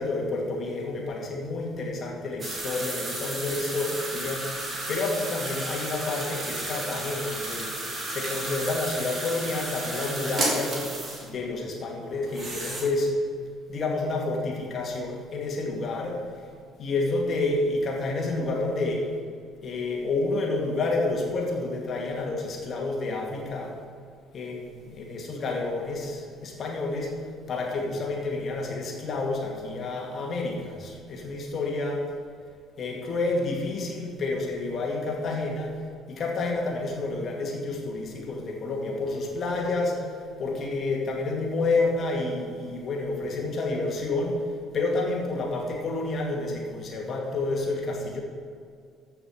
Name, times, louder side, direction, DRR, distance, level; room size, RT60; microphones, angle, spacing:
voice 1, 0.0-7.7 8.1-10.8 11.2-13.1 13.7-16.2 16.8-19.0 19.6-23.7 24.3-27.1 27.5-32.0 32.8-35.7 36.1-39.9 40.4-44.4 44.7-48.2, left 3 dB, 40° left, 0 dB, 2.4 m, -29 dB
sound 1, 2.4-11.3 12.2-12.8, right 2 dB, 30° right, 3.2 m, -33 dB
14.5 x 5.8 x 5.8 m, 2.3 s
figure-of-eight pair, 50°, 0 cm